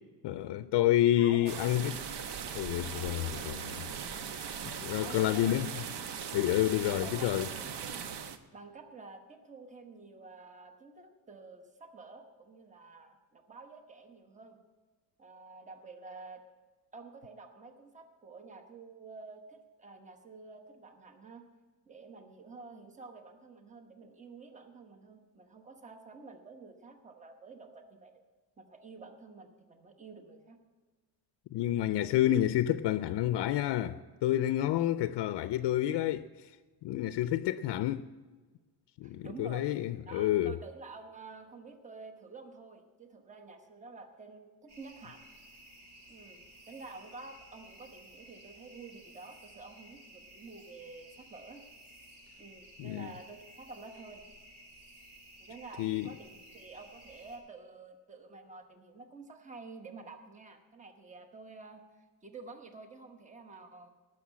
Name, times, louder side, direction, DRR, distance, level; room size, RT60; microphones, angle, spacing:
voice 1, 0.2-1.9 2.5-3.8 4.3-4.4 4.8-5.7 6.3-7.5 31.5-36.5 36.8-38.1 39.0-40.5 52.8-53.1 55.8-56.1, left 13 dB, 80° left, 0.5 m, -29 dB
voice 2, 1.2-2.0 5.0-5.7 6.9-8.1 8.5-14.6 15.2-16.4 16.9-21.5 21.9-28.1 28.6-30.6 39.0-39.7 40.1-45.3 46.1-51.6 52.4-54.2 55.4-61.8 62.2-63.9, right 3 dB, 20° right, 1.0 m, -50 dB
sound 1, 1.5-8.4, right 7 dB, 85° right, 1.0 m, -39 dB
sound 2, 44.7-57.4, right 1 dB, 65° right, 3.2 m, -55 dB
19.0 x 6.5 x 7.3 m
cardioid pair, 170°, 41 cm